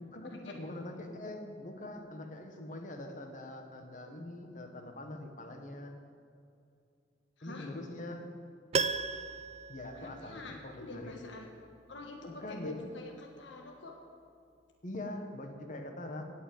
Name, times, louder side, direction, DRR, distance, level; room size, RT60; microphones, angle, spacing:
voice 1, 0.0-5.9 7.4-8.2 9.7-11.2 12.2-12.8 14.8-16.2, left 1 dB, 45° left, 4 dB, 1.4 m, -43 dB
voice 2, 7.4-7.7 9.9-11.5 11.9-13.9, left 2 dB, 70° left, 1 dB, 1.5 m, -46 dB
Piano, 8.7-10.8 11.1-11.2, right 4 dB, 35° right, 0.4 m, -35 dB
17.0 x 5.9 x 8.6 m, 2.5 s
head